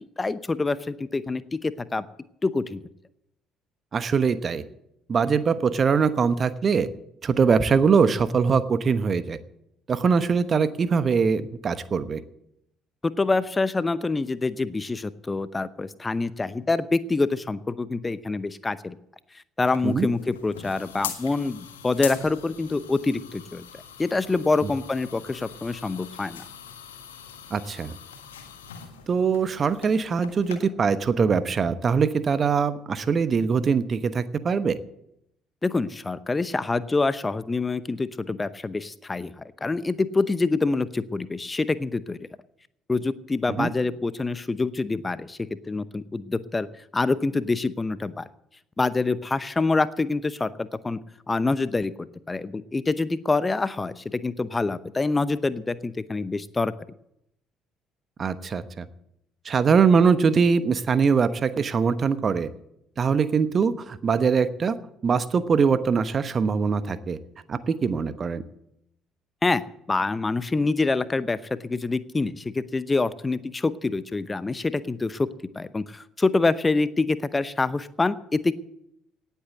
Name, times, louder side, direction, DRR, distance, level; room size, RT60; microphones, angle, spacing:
voice 1, 0.0-2.1 2.4-2.8 13.0-19.0 19.6-23.6 24.0-26.4 35.6-42.2 42.9-46.7 46.9-48.3 48.8-51.0 51.3-56.7 69.4-69.6 69.9-75.3 75.5-78.5, left 3 dB, 20° left, 16 dB, 0.7 m, -26 dB
voice 2, 3.9-4.6 5.1-6.9 7.2-9.4 9.9-12.2 19.8-20.1 24.6-24.7 27.5-27.9 29.1-34.8 43.6-43.7 58.2-58.8 59.4-62.5 63.0-64.8 65.0-67.2 67.5-68.4, right 5 dB, 40° right, 14 dB, 1.1 m, -22 dB
sound 1, 19.6-30.6, left 8 dB, 75° left, 1.6 m, -41 dB
18.0 x 8.4 x 8.0 m, 0.79 s
figure-of-eight pair, 50°, 0 cm